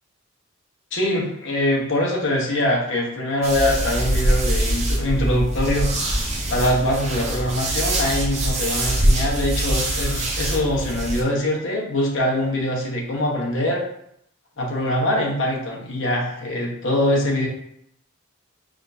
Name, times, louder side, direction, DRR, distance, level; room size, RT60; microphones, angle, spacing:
voice 1, 0.9-13.8 14.6-17.5, left 1 dB, 65° left, -2 dB, 1.0 m, -23 dB
sound 1, 3.4-11.2, right 1 dB, 35° right, 0.7 m, -23 dB
5.0 x 2.5 x 2.6 m, 0.74 s
head